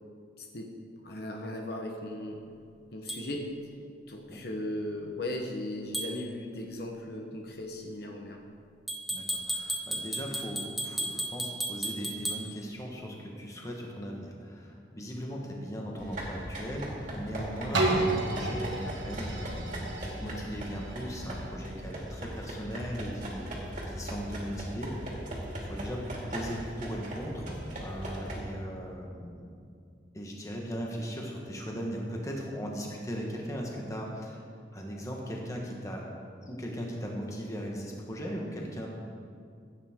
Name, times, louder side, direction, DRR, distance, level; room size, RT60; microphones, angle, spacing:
voice 1, 0.4-0.7 1.0-2.4 2.9-3.5 4.1-8.4, left 1 dB, 60° left, 1 dB, 1.1 m, -37 dB
sound 1, 3.1-3.2 5.9-6.1 8.9-12.4, right 1 dB, ahead, 1.0 m, -34 dB
voice 2, 9.1-19.5 20.0-25.2 25.6-29.5 30.1-34.4 34.7-36.1 36.4-38.9, equal, 15° left, -1 dB, 1.4 m, -38 dB
sound 2, 16.0-28.4, right 1 dB, 45° right, 2.4 m, -39 dB
sound 3, 17.7-23.5 24.0-24.1, right 2 dB, 90° right, 1.8 m, -33 dB
15.5 x 9.0 x 3.7 m, 2.3 s
head